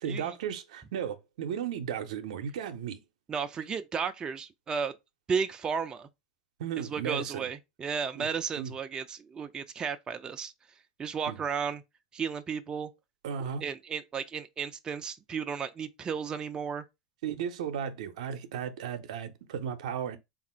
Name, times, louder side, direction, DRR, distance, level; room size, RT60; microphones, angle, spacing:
voice 1, 0.0-3.0 6.6-7.5 8.2-8.3 8.6-8.7 11.3-11.4 13.2-13.6 17.2-20.2, right 8 dB, 75° right, 0.6 m, -35 dB
voice 2, 3.3-4.9 5.3-6.1 6.8-10.5 11.0-11.8 12.1-12.9 13.4-16.8, right 6 dB, 20° right, 0.4 m, -34 dB
3.5 x 2.5 x 4.2 m
hypercardioid pair, 110°, 4 cm